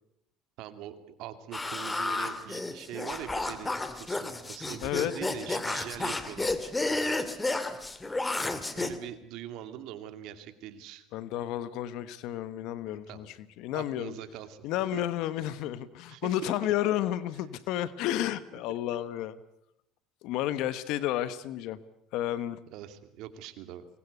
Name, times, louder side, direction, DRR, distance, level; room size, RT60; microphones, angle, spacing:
voice 1, 0.6-6.7 8.7-11.1 12.9-13.3 13.7-14.6 14.9-15.0 16.1-16.5 22.7-23.9, right 11 dB, 70° right, 10 dB, 2.4 m, -43 dB
sound 1, 1.5-9.0, left 2 dB, 15° left, 2.4 m, -32 dB
voice 2, 4.8-5.1 11.1-13.3 13.6-14.2 14.6-19.4 20.2-21.8 22.1-22.6, left 12 dB, 70° left, 15 dB, 1.2 m, -31 dB
24.0 x 21.0 x 8.2 m, 0.80 s
supercardioid pair, 80°, 0 cm